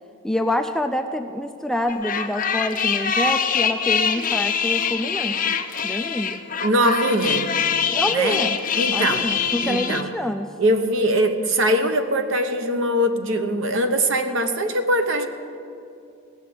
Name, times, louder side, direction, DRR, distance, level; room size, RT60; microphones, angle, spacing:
voice 1, 0.2-5.5 5.8-6.4 7.9-8.6 8.9-10.5, left 1 dB, ahead, 6 dB, 0.3 m, -26 dB
sound 1, 1.9-10.0, left 7 dB, 40° left, 0.7 m, -24 dB
voice 2, 6.6-7.5 8.1-8.4 8.7-9.3 9.6-10.1 10.6-15.3, right 1 dB, 60° right, 7 dB, 1.0 m, -22 dB
16.5 x 6.7 x 9.5 m, 2.5 s
head